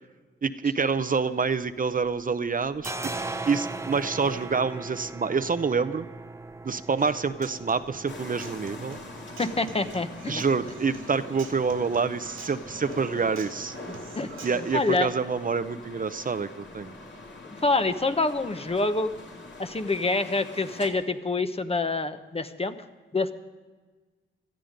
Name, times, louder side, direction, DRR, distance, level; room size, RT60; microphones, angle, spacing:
voice 1, 0.4-3.1 3.5-6.1 6.6-9.0 10.3-13.8 14.4-16.9, right 5 dB, 40° right, 11 dB, 0.7 m, -27 dB
sound 1, 1.3-2.2 2.4-20.0, right 2 dB, 15° right, 0.9 m, -42 dB
Human voice / Acoustic guitar, 7.0-15.0, right 4 dB, 80° right, 2.1 m, -46 dB
sound 2, 8.1-20.9, left 2 dB, 60° left, 2.6 m, -44 dB
voice 2, 9.4-10.4 14.2-14.3 14.7-15.1 17.4-19.1 19.6-22.7 23.1-23.3, left 3 dB, 30° left, 9 dB, 1.0 m, -26 dB
18.0 x 12.5 x 5.2 m, 1.3 s
cardioid pair, 65°, 21 cm